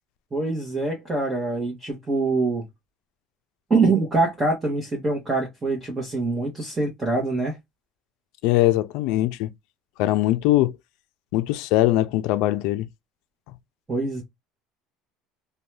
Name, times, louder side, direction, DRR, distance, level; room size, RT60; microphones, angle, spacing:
voice 1, 0.3-2.7 3.7-7.6 13.9-14.2, right 3 dB, 15° right, 1.0 m, -24 dB
voice 2, 8.4-9.5 10.0-10.8 11.3-12.9, left 16 dB, 70° left, 0.4 m, -21 dB
2.7 x 2.2 x 3.2 m
cardioid pair, 140°, 0 cm